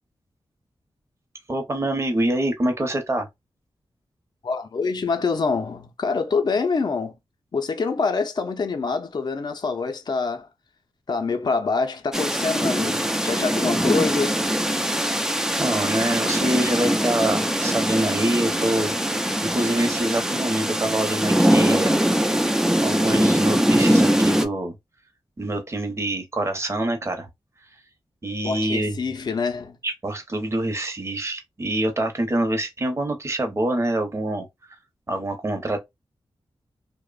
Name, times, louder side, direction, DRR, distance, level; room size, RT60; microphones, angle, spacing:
voice 1, 1.5-3.3 15.6-18.9 19.4-22.0 22.8-24.7 25.4-27.3 28.2-29.0 29.8-34.5 35.1-35.8, right 1 dB, 30° right, 0.7 m, -25 dB
voice 2, 4.4-7.1 7.5-10.5 11.1-14.4 28.4-29.8, left 4 dB, 50° left, 0.5 m, -25 dB
sound 1, 12.1-24.5, equal, 5° right, 0.3 m, -22 dB
2.9 x 2.1 x 2.3 m
wide cardioid pair, 115°, 9 cm